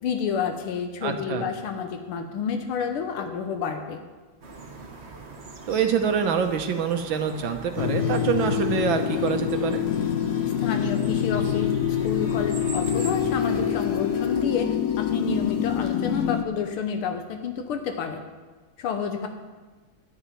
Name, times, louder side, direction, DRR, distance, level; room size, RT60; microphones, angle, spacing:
voice 1, 0.0-4.0 10.6-11.7 12.0-18.2 18.8-19.3, left 6 dB, 80° left, 6 dB, 1.8 m, -29 dB
voice 2, 1.0-1.5 5.7-9.9, right 7 dB, 70° right, 6 dB, 1.6 m, -25 dB
sound 1, 4.4-14.4, right 3 dB, 35° right, 1.3 m, -42 dB
sound 2, 7.8-16.5, left 9 dB, 65° left, 1.1 m, -25 dB
12.0 x 7.1 x 9.0 m, 1.3 s
omnidirectional pair, 2.3 m